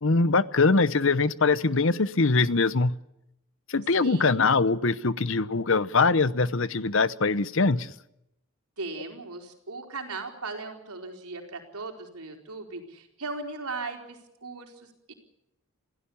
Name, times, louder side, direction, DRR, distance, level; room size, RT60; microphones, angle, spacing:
voice 1, 0.0-2.9 3.7-7.9, left 3 dB, 60° left, 16 dB, 0.8 m, -23 dB
voice 2, 4.0-4.3 8.8-15.1, right 3 dB, 85° right, 3 dB, 4.4 m, -38 dB
26.5 x 16.5 x 7.1 m, 0.83 s
head